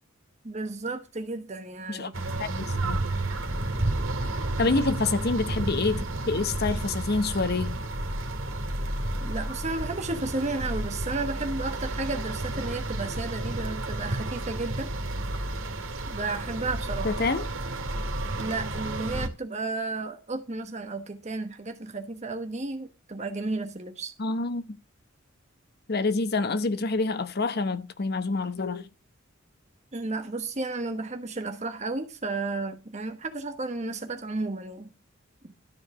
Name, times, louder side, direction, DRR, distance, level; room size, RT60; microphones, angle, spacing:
voice 1, 0.4-2.4 4.6-4.8 9.2-14.9 16.1-17.1 18.4-24.1 29.9-34.9, right 3 dB, 35° right, 1.1 m, -33 dB
sound 1, 2.1-19.3, right 2 dB, 80° right, 2.3 m, -31 dB
voice 2, 2.4-3.1 4.6-7.8 17.0-17.4 24.2-24.8 25.9-28.9, left 3 dB, 50° left, 0.9 m, -27 dB
13.0 x 4.8 x 6.3 m
head